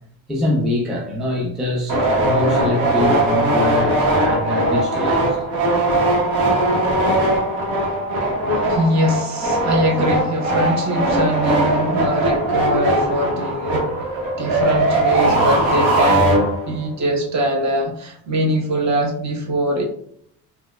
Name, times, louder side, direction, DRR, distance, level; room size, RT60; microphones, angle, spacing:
voice 1, 0.3-5.4, left 2 dB, ahead, 0.4 m, -24 dB
sound 1, 1.9-16.9, right 1 dB, 90° right, 1.1 m, -19 dB
voice 2, 8.5-13.9 14.4-16.4 16.7-19.8, right 1 dB, 45° right, 0.8 m, -22 dB
4.2 x 2.2 x 2.3 m
cardioid pair, 135°, 41 cm